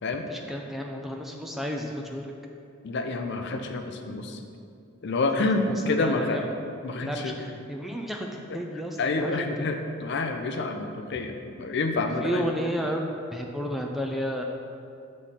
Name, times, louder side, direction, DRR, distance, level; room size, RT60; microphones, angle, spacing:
voice 1, 0.3-2.3 5.6-6.5 7.0-9.7 12.2-14.4, equal, ahead, 1 dB, 0.3 m, -32 dB
voice 2, 2.8-4.4 5.0-6.5 6.8-7.3 9.0-12.4, left 3 dB, 55° left, 5 dB, 0.5 m, -28 dB
6.7 x 3.2 x 5.7 m, 2.4 s
head